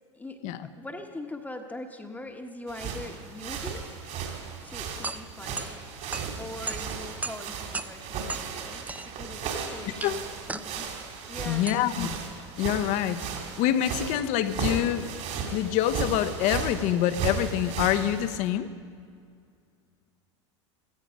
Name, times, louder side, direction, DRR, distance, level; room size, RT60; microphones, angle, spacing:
voice 1, 0.1-4.0 4.6-5.7 6.4-11.9, left 2 dB, 10° left, 3 dB, 1.2 m, -42 dB
sound 1, 2.7-18.4, right 6 dB, 50° right, 3.1 m, -35 dB
sound 2, 5.0-13.7, right 3 dB, 10° right, 0.5 m, -40 dB
voice 2, 11.5-12.1 12.6-13.2 13.6-15.1 15.5-18.7, left 11 dB, 55° left, 11 dB, 1.0 m, -26 dB
16.0 x 15.0 x 5.3 m, 2.2 s
hypercardioid pair, 85°, 15 cm